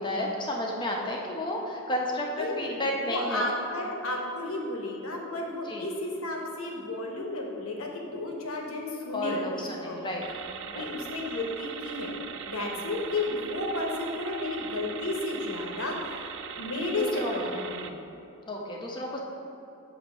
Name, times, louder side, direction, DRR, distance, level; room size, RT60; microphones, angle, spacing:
voice 1, 0.0-3.5 5.7-5.9 9.1-10.2 10.7-10.9 12.7-12.9 17.0-17.5 18.5-19.2, left 1 dB, 20° left, -1 dB, 0.8 m, -32 dB
voice 2, 2.3-2.8 3.0-10.0 10.7-12.1 12.5-18.0, left 2 dB, 70° left, 0 dB, 1.0 m, -33 dB
sound 1, 10.2-17.9, right 7 dB, 60° right, 0.4 m, -40 dB
7.8 x 2.8 x 6.1 m, 2.9 s
head